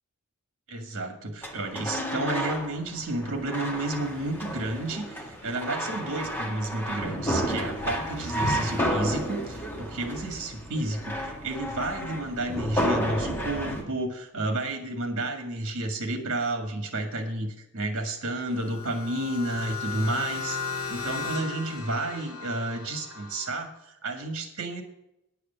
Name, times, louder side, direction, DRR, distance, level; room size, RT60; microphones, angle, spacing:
voice 1, 0.7-5.0 5.4-20.6 20.9-23.7 24.0-24.8, right 2 dB, 60° right, 5 dB, 2.0 m, -31 dB
sound 1, 1.4-13.8, equal, 10° left, 1.8 m, -31 dB
sound 2, 18.4-23.5, left 5 dB, 65° left, 3.3 m, -36 dB
9.6 x 8.4 x 6.9 m, 0.84 s
head